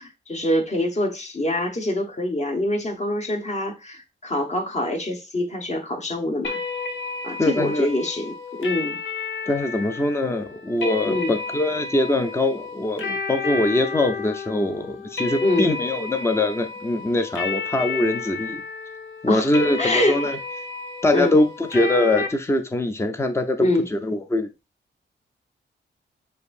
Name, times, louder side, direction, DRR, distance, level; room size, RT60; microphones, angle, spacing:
voice 1, 0.0-6.6 7.2-9.0 11.1-11.3 15.4-15.7 19.3-19.5 19.8-20.3 21.1-21.4 23.6-23.9, left 1 dB, 35° left, 1.1 m, -25 dB
sound 1, 6.4-22.3, left 4 dB, 85° left, 0.8 m, -32 dB
voice 2, 7.4-7.9 9.5-18.6 19.2-20.4 21.0-23.6 23.9-24.5, left 2 dB, 15° left, 0.5 m, -23 dB
6.8 x 2.6 x 2.5 m
wide cardioid pair, 110°, 20 cm